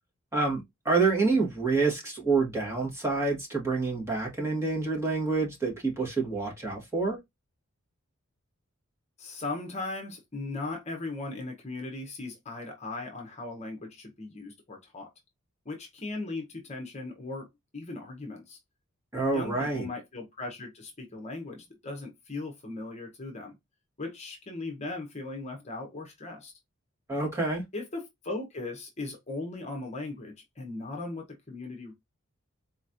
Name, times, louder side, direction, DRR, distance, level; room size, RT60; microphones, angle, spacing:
voice 1, 0.3-7.2 19.1-19.9 27.1-27.6, right 3 dB, 15° right, 1.5 m, -27 dB
voice 2, 9.2-15.1 15.6-17.5 17.7-18.6 19.3-23.6 24.0-26.5 27.7-31.9, left 2 dB, 35° left, 0.9 m, -38 dB
4.1 x 3.0 x 2.5 m
head